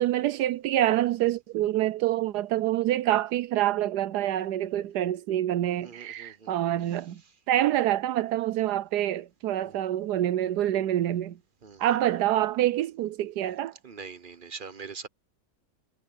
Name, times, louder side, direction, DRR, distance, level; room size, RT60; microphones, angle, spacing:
voice 1, 0.0-7.2 7.5-11.4 11.8-13.7, right 13 dB, 80° right, 1.2 m, -26 dB
voice 2, 5.8-6.5 6.9-7.3 9.6-9.8 11.6-11.9 13.8-15.1, right 5 dB, 40° right, 0.8 m, -43 dB
omnidirectional pair, 1.7 m